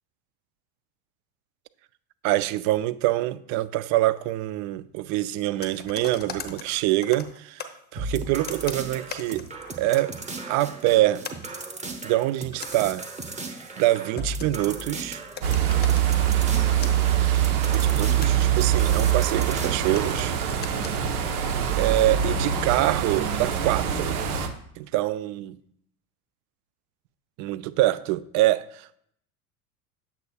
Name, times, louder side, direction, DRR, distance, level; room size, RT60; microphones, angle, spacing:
voice 1, 2.2-9.5 9.8-10.1 10.5-11.2 12.0-13.0 13.8-15.2 17.7-20.3 21.8-24.2 24.8-25.5 27.4-29.0, right 16 dB, 40° right, 0.4 m, -25 dB
sound 1, 5.6-7.8 8.4-10.0 10.5-10.8 11.2-14.8 15.1-15.2 15.3-16.2 16.5-17.0 17.9-19.3 19.9-21.7, left 5 dB, 20° left, 0.7 m, -41 dB
sound 2, 8.0-20.3, right 3 dB, 15° right, 1.0 m, -37 dB
Wind on trees, 15.4-24.5, right 9 dB, 75° right, 0.9 m, -23 dB
8.2 x 6.9 x 2.3 m
hypercardioid pair, 75°, 44 cm